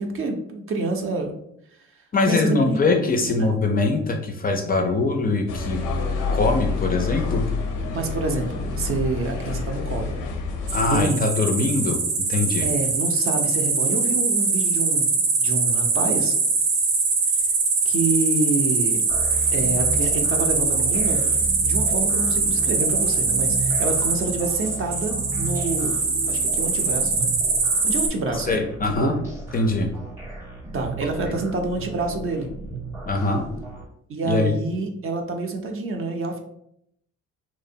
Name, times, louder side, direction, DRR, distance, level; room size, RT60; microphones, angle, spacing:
voice 1, 0.0-1.3 2.2-2.8 3.2-3.5 7.9-10.1 10.9-11.3 12.6-16.3 17.9-19.0 19.5-21.3 21.6-26.0 26.3-27.3 27.8-29.1 30.7-32.5 34.1-36.4, right 3 dB, 45° right, 4 dB, 0.5 m, -27 dB
voice 2, 2.1-5.8 6.3-7.5 10.7-12.7 28.5-29.1 29.5-29.9 31.2-31.3 33.1-33.4 34.2-34.5, left 3 dB, 30° left, 3 dB, 0.3 m, -22 dB
sound 1, 5.5-11.1, left 4 dB, 85° left, 0.5 m, -28 dB
sound 2, 10.7-28.1, right 4 dB, 75° right, 0.8 m, -22 dB
sound 3, 19.1-33.9, right 2 dB, 10° right, 0.7 m, -34 dB
2.7 x 2.0 x 2.5 m, 0.74 s
cardioid pair, 90°, 30 cm